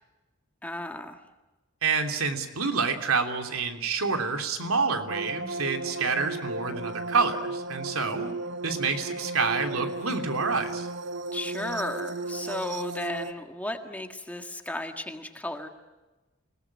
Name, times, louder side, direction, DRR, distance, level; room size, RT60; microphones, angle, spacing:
voice 1, 0.6-1.2 11.3-15.7, left 1 dB, 5° left, 5 dB, 1.7 m, -34 dB
voice 2, 1.8-8.3 8.6-10.9, right 4 dB, 85° right, 5 dB, 3.1 m, -28 dB
sound 1, 5.1-13.3, right 2 dB, 55° right, 0.9 m, -35 dB
28.0 x 19.0 x 9.8 m, 1.1 s
head